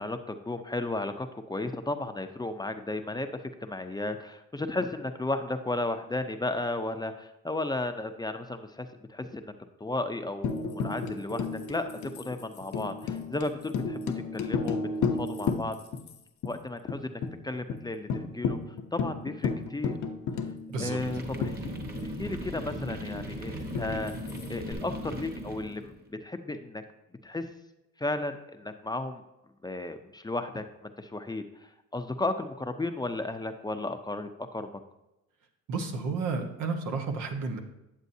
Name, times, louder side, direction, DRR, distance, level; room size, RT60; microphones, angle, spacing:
voice 1, 0.0-9.5 9.8-14.8 15.2-15.7 16.4-18.6 18.9-20.0 20.8-21.6 22.0-24.1 24.5-26.8 27.2-27.5 28.0-29.2 29.6-31.4 31.9-34.7, left 2 dB, 15° left, 7 dB, 0.5 m, -34 dB
Tambourine, 10.4-16.1 16.4-16.5 16.9-17.3 17.7-17.8 18.1-22.2 23.7-24.7, left 5 dB, 75° left, 0.8 m, -33 dB
sound 1, 21.0-26.0, equal, 30° right, 1.4 m, -38 dB
voice 2, 35.7-37.6, right 4 dB, 85° right, 4 dB, 1.2 m, -31 dB
9.2 x 7.3 x 2.7 m, 0.92 s
cardioid pair, 90°, 30 cm